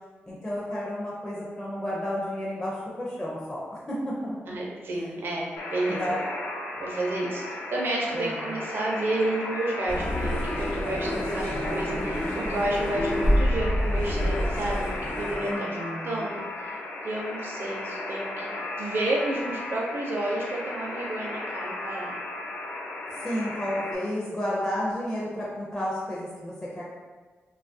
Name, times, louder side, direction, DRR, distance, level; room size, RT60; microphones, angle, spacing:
voice 1, 0.3-4.6 5.9-6.2 8.1-8.5 15.5-16.4 23.2-26.8, equal, 20° left, -6 dB, 0.4 m, -32 dB
voice 2, 4.5-6.0 6.8-7.4 7.7-15.8 16.0-16.8 17.0-22.2, right 1 dB, 60° right, -2 dB, 0.5 m, -31 dB
Alarm, 5.6-24.0, left 2 dB, 75° left, 0.5 m, -35 dB
sound 1, 9.9-15.5, equal, 55° left, 0.9 m, -27 dB
2.9 x 2.3 x 2.5 m, 1.4 s
wide cardioid pair, 120°, 4 cm